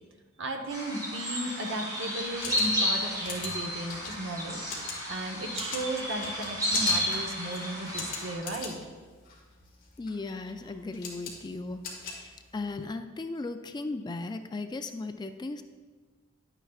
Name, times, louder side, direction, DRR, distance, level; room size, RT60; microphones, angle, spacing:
voice 1, 0.4-4.6 5.1-8.8, right 1 dB, 65° right, 4 dB, 1.0 m, -35 dB
sound 1, 0.7-8.3, equal, 20° right, 2.8 m, -32 dB
sound 2, 2.2-12.8, left 4 dB, 45° left, 1.7 m, -41 dB
voice 2, 10.0-15.6, left 3 dB, 20° left, 8 dB, 0.3 m, -37 dB
11.0 x 8.9 x 2.4 m, 1.4 s
head